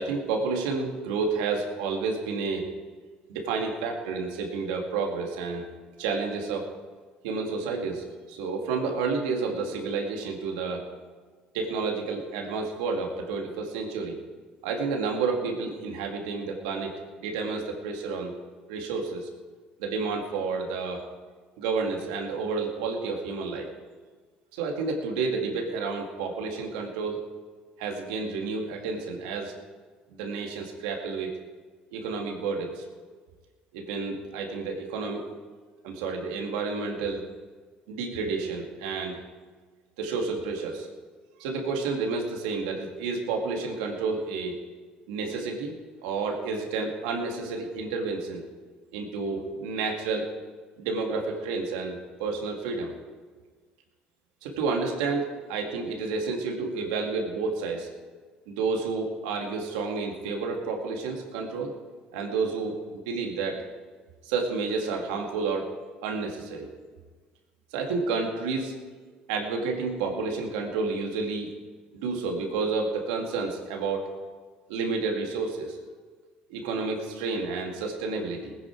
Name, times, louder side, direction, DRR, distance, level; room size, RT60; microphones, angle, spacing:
voice 1, 0.0-2.7 3.3-5.7 6.0-6.7 7.2-10.9 11.5-14.2 14.6-18.3 18.7-19.3 19.8-21.0 21.6-23.7 24.5-27.2 27.8-29.5 30.1-31.4 31.9-32.8 33.7-35.3 35.8-37.2 37.9-39.2 40.0-40.9 41.4-44.6 45.1-45.8 46.0-48.5 48.9-50.3 50.8-52.9 54.4-57.9 58.5-61.7 62.1-63.6 64.2-65.8 66.0-66.7 67.7-68.8 69.3-71.5 71.9-74.1 74.7-75.8 76.5-78.6, right 4 dB, 85° right, 1 dB, 2.5 m, -30 dB
20.0 x 10.0 x 4.7 m, 1.5 s
supercardioid pair, 75°, 4 cm